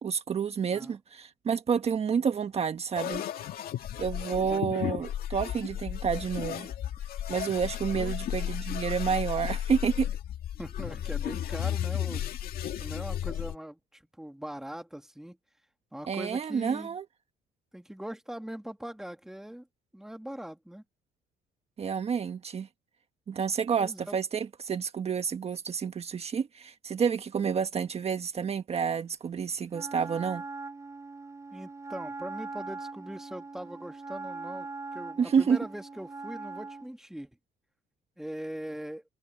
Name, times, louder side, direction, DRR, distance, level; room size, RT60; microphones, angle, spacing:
voice 1, 0.0-3.2 4.0-6.7 7.3-10.1 16.1-17.0 21.8-22.7 23.3-30.4 35.2-35.6, right 6 dB, 40° right, 1.4 m, -29 dB
sound 1, 2.9-13.5, left 11 dB, 60° left, 2.1 m, -34 dB
voice 2, 4.3-5.1 7.9-8.1 10.6-12.2 12.6-15.4 15.9-17.0 17.7-19.7 19.9-20.8 23.8-24.1 31.5-37.3 38.2-39.0, right 1 dB, 5° right, 2.0 m, -41 dB
Wind instrument woodwind instrument, 29.7-36.9, right 3 dB, 20° right, 5.0 m, -41 dB
cardioid pair, 110°, 17 cm